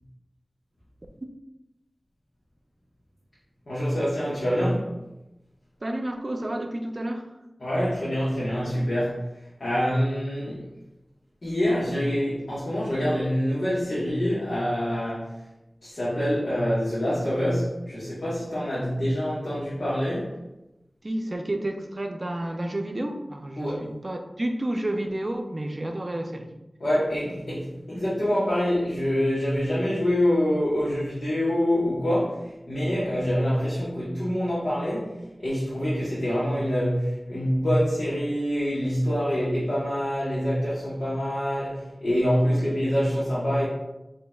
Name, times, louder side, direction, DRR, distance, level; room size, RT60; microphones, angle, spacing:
voice 1, 3.7-4.9 7.6-9.2 9.6-10.7 11.4-15.3 15.8-20.4 23.6-23.8 26.8-43.7, equal, 75° left, -9 dB, 1.3 m, -26 dB
voice 2, 5.8-7.3 21.0-26.5, right 1 dB, 45° right, 4 dB, 0.6 m, -30 dB
6.2 x 3.2 x 2.3 m, 0.94 s
wide cardioid pair, 50°, 0 cm